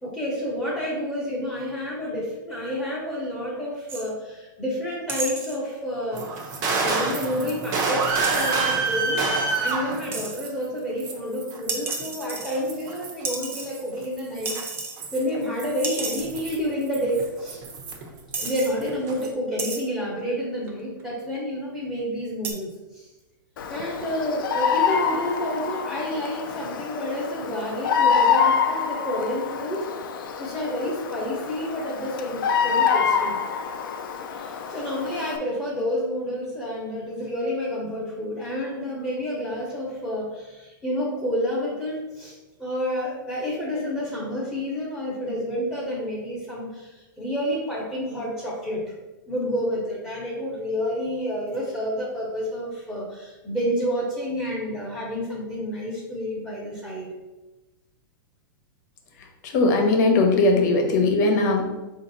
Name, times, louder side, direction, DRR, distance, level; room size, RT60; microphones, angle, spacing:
voice 1, 0.0-14.6 15.1-17.6 18.3-23.1 23.7-29.9 30.4-33.4 34.3-48.9 49.3-57.1, equal, 5° left, -7 dB, 1.0 m, -29 dB
sound 1, 3.9-4.1 5.1-5.6 8.2-8.5 10.1-10.4 11.7-12.9 13.2-14.0 14.5-15.0 15.3-15.4 15.8-16.3 17.2-17.3 17.9-18.0 18.3-18.7 19.6-19.8 20.7-21.0 22.4-22.5, right 3 dB, 20° right, 0.6 m, -32 dB
sound 2, 6.1-10.7 11.0-13.2 13.7-18.2 18.4-19.3, right 4 dB, 45° right, 0.9 m, -28 dB
Bird vocalization bird call bird song, 23.6-35.4, left 6 dB, 70° left, 0.5 m, -26 dB
voice 2, 59.5-61.6, left 2 dB, 50° left, 3 dB, 0.9 m, -19 dB
4.8 x 2.6 x 4.0 m, 1.1 s
supercardioid pair, 155°, 12 cm